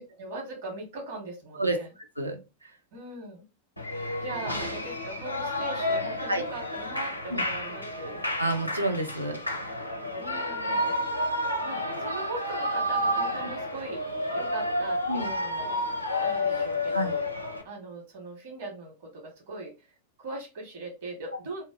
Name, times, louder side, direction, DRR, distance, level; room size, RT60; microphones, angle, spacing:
voice 1, 0.0-1.9 2.9-3.4 3.9-8.2 10.1-17.3 17.6-19.9 20.2-21.6, right 2 dB, 50° right, 1 dB, 1.0 m, -40 dB
Shout / Cheering, 3.8-17.6, left 1 dB, 85° left, 0.4 m, -30 dB
voice 2, 8.4-9.4 15.1-15.3 16.9-17.1, right 1 dB, 85° right, 3 dB, 0.5 m, -28 dB
2.2 x 2.1 x 3.4 m, 0.28 s
figure-of-eight pair, 90°, 0 cm